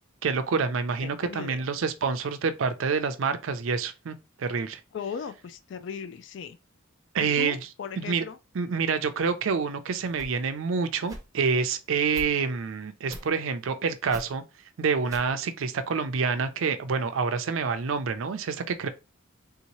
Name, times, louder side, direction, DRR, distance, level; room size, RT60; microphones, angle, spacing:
voice 1, 0.2-4.8 7.1-7.6 8.0-8.2 8.5-14.4 14.8-18.9, right 5 dB, 80° right, 0.5 m, -27 dB
voice 2, 1.0-1.6 4.9-6.6 7.2-8.4, left 6 dB, 65° left, 0.3 m, -37 dB
sound 1, 9.2-9.3 10.0-10.4 11.0-11.2 12.0-12.3 13.0-13.3 14.0-14.3 15.0-15.3, right 1 dB, 15° right, 0.6 m, -42 dB
3.5 x 2.8 x 2.9 m
head